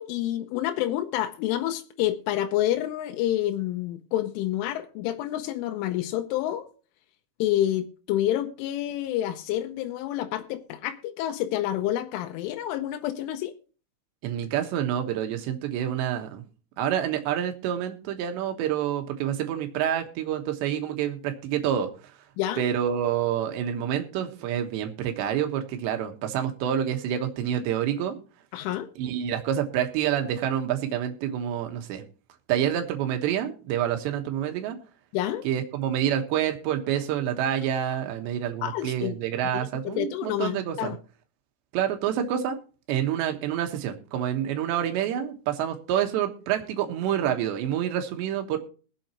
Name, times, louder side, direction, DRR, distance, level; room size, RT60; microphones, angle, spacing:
voice 1, 0.0-6.7 7.4-13.5 22.4-22.6 28.5-28.9 35.1-35.5 38.6-39.2 39.5-41.0, left 13 dB, 90° left, 3.3 m, -28 dB
voice 2, 14.2-16.4 16.8-21.9 22.6-28.2 29.0-32.1 32.5-34.8 35.4-40.9 41.7-42.6 42.9-48.6, right 10 dB, 70° right, 3.3 m, -27 dB
21.5 x 7.9 x 2.9 m
omnidirectional pair, 5.5 m